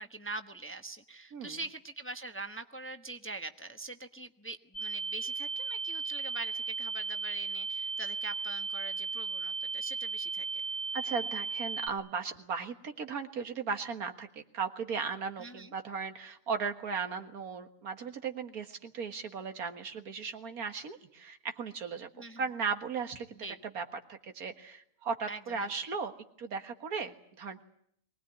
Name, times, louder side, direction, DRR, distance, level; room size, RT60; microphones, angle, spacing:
voice 1, 0.0-10.6 15.4-15.7 22.2-22.4 23.4-23.6 25.3-25.7, right 3 dB, 10° left, 7 dB, 0.9 m, -43 dB
sound 1, 4.7-11.9, right 4 dB, 55° left, 2.1 m, -36 dB
voice 2, 10.9-26.1 26.4-27.6, right 5 dB, 85° right, 7 dB, 2.1 m, -37 dB
23.5 x 19.0 x 9.7 m, 0.69 s
omnidirectional pair, 1.5 m